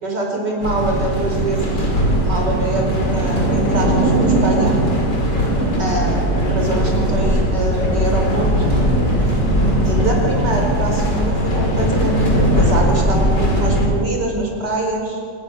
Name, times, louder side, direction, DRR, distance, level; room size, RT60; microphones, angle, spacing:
voice 1, 0.0-1.9 2.2-4.7 5.8-6.2 6.5-8.5 9.8-15.2, right 1 dB, 80° right, 1 dB, 5.6 m, -24 dB
sound 1, 0.6-13.9, right 1 dB, 80° left, 6.0 m, -18 dB
27.5 x 19.5 x 7.4 m, 2.1 s
omnidirectional pair, 1.8 m